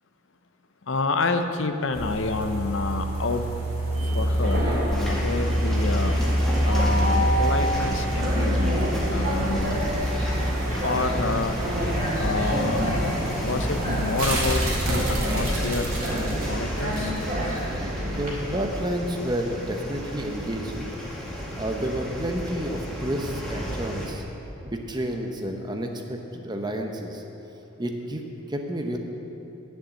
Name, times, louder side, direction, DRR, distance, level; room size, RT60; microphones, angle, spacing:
voice 1, 0.9-3.5 4.0-6.2 6.6-8.8 9.1-9.8 10.8-11.6 12.2-12.8 13.4-17.1, left 3 dB, 60° left, 7 dB, 0.7 m, -28 dB
sound 1, 1.9-17.6 18.0-18.1, equal, 80° right, 2.8 m, -27 dB
Train, 3.9-18.3, equal, 40° right, 2.8 m, -30 dB
sound 2, 4.9-24.1, equal, ahead, 1.7 m, -33 dB
voice 2, 17.6-20.9 21.2-24.2 24.6-27.2 27.8-29.0, right 1 dB, 20° right, 3 dB, 0.8 m, -30 dB
10.5 x 7.1 x 7.7 m, 3.0 s
head